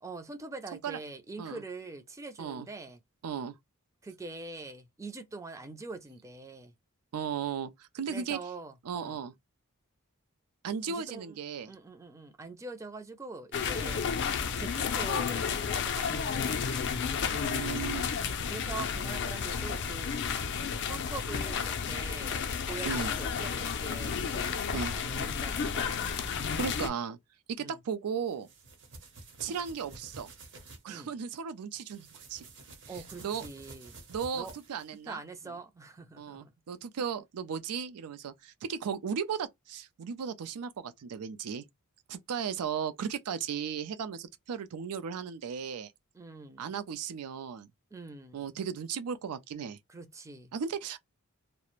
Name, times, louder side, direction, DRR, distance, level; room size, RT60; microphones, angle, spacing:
voice 1, 0.0-3.0 4.0-6.7 8.1-9.2 10.9-11.4 11.7-14.0 14.6-16.8 18.5-20.1 20.8-22.4 22.7-26.0 27.6-27.8 30.9-31.1 32.9-34.0 34.3-34.6 35.1-36.5 46.1-46.7 47.9-48.4 49.9-50.5, right 3 dB, 15° right, 0.4 m, -44 dB
voice 2, 3.2-3.5 7.1-8.4 8.8-9.3 10.6-11.7 17.3-18.1 22.8-23.1 24.7-24.9 26.5-27.2 27.5-28.5 29.4-30.3 30.8-32.4 33.2-33.4 34.1-35.2 36.2-41.6 42.1-45.9 46.6-47.7 48.3-49.8 50.5-51.0, right 7 dB, 85° right, 0.4 m, -36 dB
sound 1, 13.5-26.9, left 6 dB, 50° left, 0.4 m, -32 dB
sound 2, 28.3-30.8 31.8-35.0, right 3 dB, 55° right, 0.8 m, -50 dB
2.4 x 2.0 x 2.9 m
head